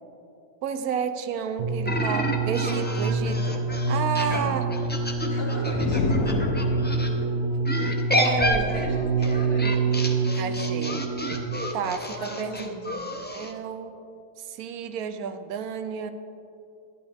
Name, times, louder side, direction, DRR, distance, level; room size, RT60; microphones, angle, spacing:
voice 1, 0.6-4.7 8.1-9.0 10.4-11.1 11.7-12.7 13.3-13.9 14.4-16.1, right 7 dB, 90° right, 10 dB, 1.1 m, -31 dB
sound 1, 1.6-11.7 12.5-12.6, right 4 dB, 55° right, 1.1 m, -26 dB
sound 2, 1.8-7.1 7.6-13.5, left 1 dB, 15° left, 0.4 m, -30 dB
voice 2, 4.2-4.7 5.2-6.5 7.0-7.4 8.2-10.6 12.1-13.1, left 1 dB, 45° left, -2 dB, 1.9 m, -38 dB
sound 3, 5.7-7.3, left 6 dB, 80° left, 1.1 m, -28 dB
11.0 x 11.0 x 3.5 m, 2.6 s
omnidirectional pair, 1.5 m